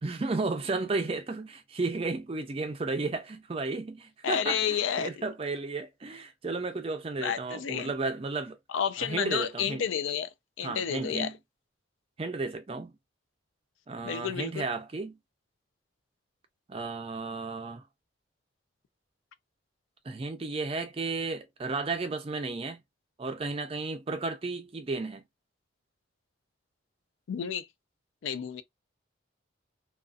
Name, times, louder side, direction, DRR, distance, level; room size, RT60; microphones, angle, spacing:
voice 1, 0.0-8.6 9.0-9.9 10.6-11.4 12.2-13.0 13.9-15.2 16.7-17.8 20.0-22.8 23.2-25.2, right 3 dB, 30° right, 0.4 m, -33 dB
voice 2, 4.2-5.1 7.2-7.9 8.7-10.3 10.6-11.3 14.0-14.6 27.3-27.7 28.2-28.6, left 8 dB, 75° left, 0.4 m, -30 dB
2.5 x 2.3 x 2.4 m
head